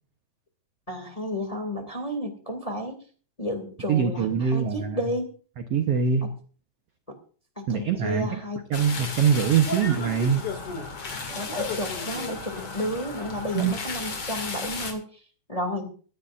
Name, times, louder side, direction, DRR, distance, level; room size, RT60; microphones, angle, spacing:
voice 1, 0.9-3.0 3.4-5.3 6.2-6.3 7.1-7.2 7.5-8.6 11.3-15.2 15.5-15.9, equal, 15° left, 4 dB, 1.6 m, -32 dB
voice 2, 3.9-5.0 5.7-6.3 7.7-8.4 8.7-10.4 13.5-13.7, right 7 dB, 80° right, 5 dB, 1.3 m, -23 dB
sound 1, 8.7-14.9, left 4 dB, 40° left, 2.9 m, -33 dB
24.0 x 11.0 x 2.5 m, 0.41 s
omnidirectional pair, 4.4 m